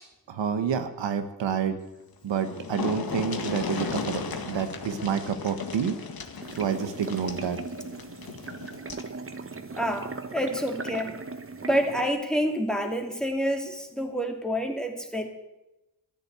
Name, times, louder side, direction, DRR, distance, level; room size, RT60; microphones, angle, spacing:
voice 1, 0.3-1.8 2.2-6.0 6.6-7.6, right 7 dB, 80° right, 8 dB, 1.5 m, -28 dB
sound 1, 2.0-2.1 2.3-9.1 10.4-10.5 10.9-11.0, left 5 dB, 55° left, 1.9 m, -36 dB
sound 2, 6.4-12.1, right 4 dB, 30° right, 1.3 m, -38 dB
voice 2, 9.8-11.1 11.6-15.3, equal, ahead, 3 dB, 2.8 m, -28 dB
13.5 x 10.5 x 8.3 m, 0.96 s
cardioid pair, 70°, 43 cm